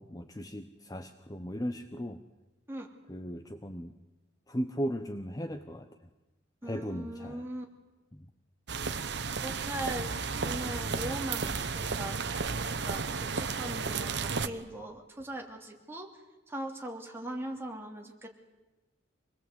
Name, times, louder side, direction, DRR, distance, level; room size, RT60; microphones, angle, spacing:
voice 1, 0.0-2.2 3.1-3.9 4.5-5.9 6.6-7.4, equal, 20° left, 7 dB, 0.9 m, -37 dB
voice 2, 6.6-7.6 9.4-10.1 10.4-12.3 12.8-16.1 16.5-18.3, right 1 dB, 10° right, 1 dB, 2.9 m, -40 dB
sound 1, 8.7-14.5, right 4 dB, 60° right, 1.1 m, -33 dB
26.0 x 20.5 x 8.2 m, 1.1 s
head